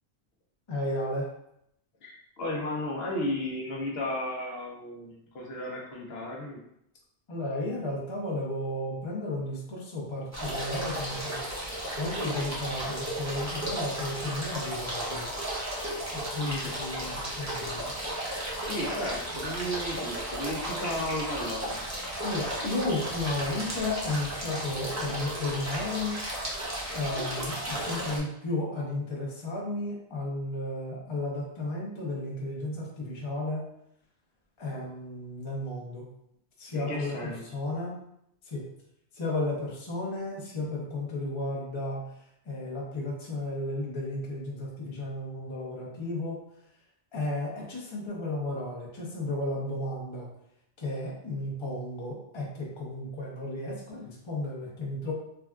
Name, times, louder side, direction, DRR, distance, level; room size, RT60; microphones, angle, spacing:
voice 1, 0.7-1.2 7.3-11.4 12.0-15.3 16.3-17.9 22.2-26.2 26.9-33.6 34.6-36.0 36.6-37.2 37.5-37.9 38.5-38.6 39.2-42.0 42.5-46.4 47.1-50.3 50.8-55.1, left 2 dB, 35° left, -4 dB, 0.6 m, -33 dB
voice 2, 2.0-6.6 16.4-16.7 18.6-21.8 36.7-37.5, left 1 dB, 70° left, -1 dB, 0.9 m, -34 dB
sound 1, 10.3-28.2, right 1 dB, 20° right, 0.5 m, -34 dB
3.5 x 2.3 x 2.3 m, 0.77 s
omnidirectional pair, 1.1 m